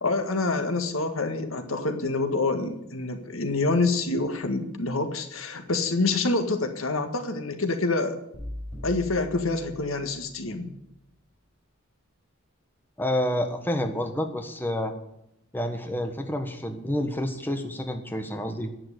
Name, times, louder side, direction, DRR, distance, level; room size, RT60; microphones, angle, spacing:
voice 1, 0.0-8.2 8.8-10.7, left 3 dB, 80° left, 7 dB, 1.8 m, -27 dB
sound 1, 8.3-10.5, left 1 dB, 30° left, 6.2 m, -40 dB
voice 2, 13.0-14.9 15.5-18.7, left 1 dB, 10° left, 5 dB, 1.4 m, -29 dB
11.0 x 9.1 x 10.0 m, 0.84 s
head